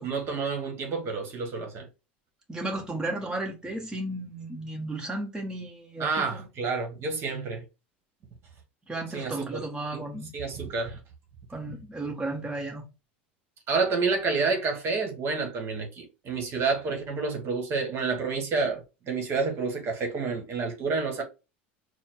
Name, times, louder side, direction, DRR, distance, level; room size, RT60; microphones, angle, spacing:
voice 1, 0.0-1.9 6.0-7.6 9.1-9.6 9.9-10.0 10.3-11.0 13.7-21.2, right 4 dB, 45° right, 1.3 m, -29 dB
voice 2, 2.5-6.5 8.9-10.3 11.5-12.8, right 2 dB, 15° right, 1.3 m, -34 dB
4.2 x 2.2 x 4.4 m
hypercardioid pair, 85°, 6 cm